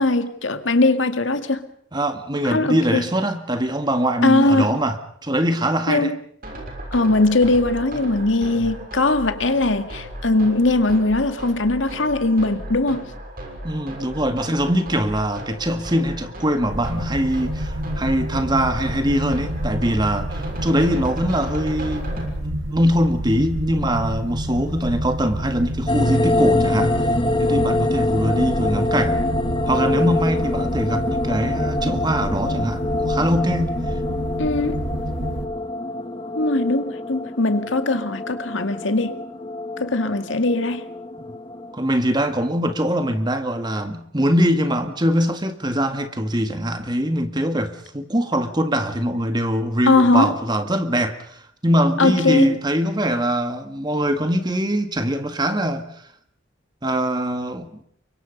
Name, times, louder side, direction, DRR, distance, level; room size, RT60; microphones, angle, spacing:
voice 1, 0.0-1.6 2.5-3.0 4.2-4.8 5.9-6.2 6.9-13.0 34.4-34.8 36.3-39.2 39.8-40.8 49.9-50.3 52.0-52.5, left 2 dB, 75° left, 2.2 m, -20 dB
voice 2, 1.9-5.0 5.2-6.1 8.6-8.7 13.6-27.1 27.4-29.2 29.7-33.8 41.2-41.3 41.7-55.9 56.8-57.7, equal, 20° right, 2.0 m, -22 dB
sound 1, 6.4-22.3, right 1 dB, 50° right, 6.5 m, -35 dB
sound 2, 16.7-35.5, equal, 75° right, 2.0 m, -29 dB
sound 3, 25.9-41.7, left 2 dB, 25° left, 1.3 m, -25 dB
30.0 x 24.5 x 5.4 m
head